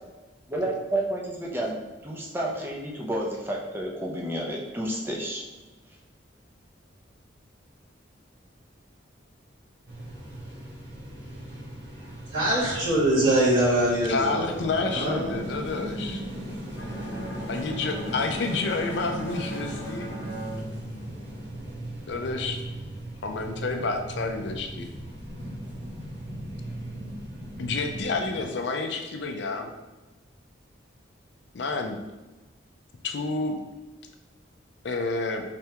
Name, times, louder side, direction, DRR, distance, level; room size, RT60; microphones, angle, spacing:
voice 1, 0.5-5.4, right 1 dB, 10° right, -2 dB, 0.5 m, -30 dB
sound 1, 9.9-28.5, right 1 dB, 65° right, 1.0 m, -38 dB
voice 2, 12.3-15.5, right 1 dB, 85° right, -10 dB, 1.3 m, -24 dB
voice 3, 14.1-16.2 17.5-20.1 22.1-22.6 23.2-24.9 27.6-29.7 31.5-32.0 33.0-33.6 34.8-35.4, left 3 dB, 65° left, 5 dB, 0.5 m, -29 dB
Bowed string instrument, 16.8-21.7, right 1 dB, 90° left, 0.8 m, -38 dB
3.4 x 3.3 x 2.9 m, 1.1 s
head